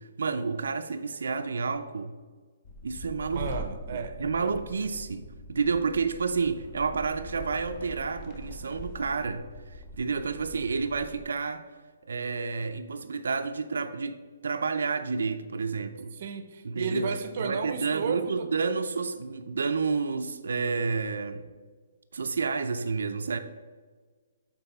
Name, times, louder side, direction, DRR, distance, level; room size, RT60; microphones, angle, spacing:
voice 1, 0.0-2.2 2.8-3.5 3.9-11.7 12.1-16.1 16.6-21.5 22.1-23.4, right 4 dB, 80° right, 0.4 m, -30 dB
sound 1, 2.6-11.2, left 1 dB, 20° left, 0.6 m, -43 dB
voice 2, 3.3-4.6 16.1-18.5, right 5 dB, 40° right, 0.6 m, -33 dB
7.8 x 4.0 x 4.1 m
hypercardioid pair, 175°, 0 cm